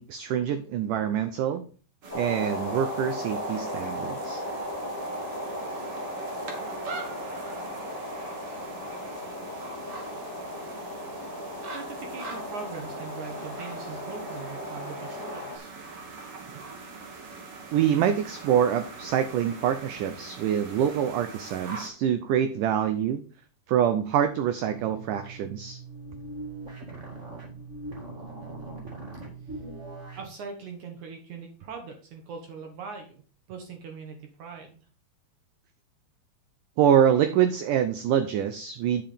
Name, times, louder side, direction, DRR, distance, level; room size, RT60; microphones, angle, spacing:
voice 1, 0.0-1.6 2.2-4.4 16.5-16.7 17.7-23.2 23.7-25.8 36.8-39.0, right 9 dB, 80° right, 10 dB, 1.8 m, -25 dB
sound 1, 2.0-21.9, right 4 dB, 45° right, 2.1 m, -42 dB
sound 2, 2.1-15.6, left 1 dB, 20° left, 0.4 m, -36 dB
voice 2, 11.7-15.7 29.5-29.6 30.2-33.2 33.5-34.9, right 5 dB, 65° right, 4 dB, 2.2 m, -41 dB
sound 3, 24.6-30.3, right 3 dB, 30° right, 1.3 m, -41 dB
8.8 x 5.8 x 5.1 m, 0.40 s
omnidirectional pair, 4.5 m